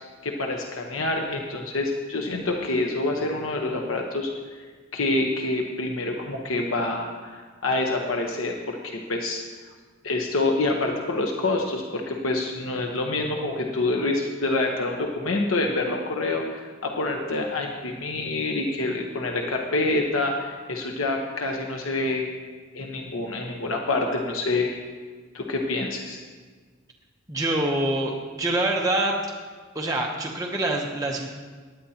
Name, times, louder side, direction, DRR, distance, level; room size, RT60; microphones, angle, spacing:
voice 1, 0.2-4.3 4.9-9.4 10.0-22.3 22.7-24.8 25.3-26.2, left 2 dB, 80° left, 1 dB, 1.1 m, -27 dB
voice 2, 27.3-29.1 29.7-31.3, right 1 dB, 15° right, -1 dB, 0.8 m, -25 dB
18.5 x 10.5 x 2.9 m, 1.5 s
head